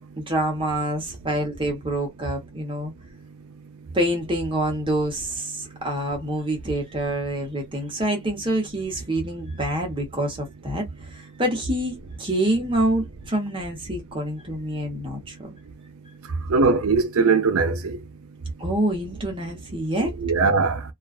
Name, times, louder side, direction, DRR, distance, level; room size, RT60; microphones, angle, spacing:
voice 1, 0.2-2.9 3.9-15.5 18.4-20.1, right 1 dB, 25° right, 0.8 m, -26 dB
voice 2, 16.5-18.0 20.0-20.8, right 4 dB, 80° right, 0.5 m, -20 dB
2.4 x 2.3 x 2.4 m
head